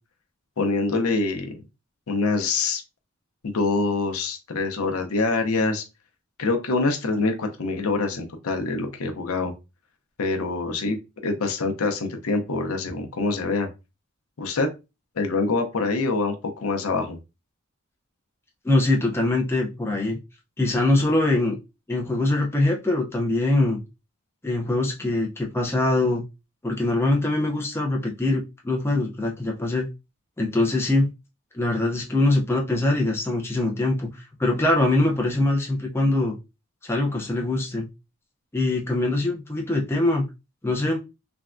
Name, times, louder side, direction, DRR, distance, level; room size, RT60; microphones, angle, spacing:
voice 1, 0.6-1.6 2.1-2.8 3.4-5.8 6.4-9.5 10.2-11.0 11.2-13.7 14.4-14.7 15.2-17.2, left 3 dB, 85° left, 5 dB, 0.6 m, -25 dB
voice 2, 18.6-20.2 20.6-21.6 21.9-23.8 24.4-26.2 26.6-29.9 30.4-31.1 31.5-36.4 36.8-37.9 38.5-40.3 40.6-41.0, left 2 dB, 10° left, -1 dB, 0.4 m, -23 dB
3.3 x 2.2 x 2.4 m, 0.26 s
head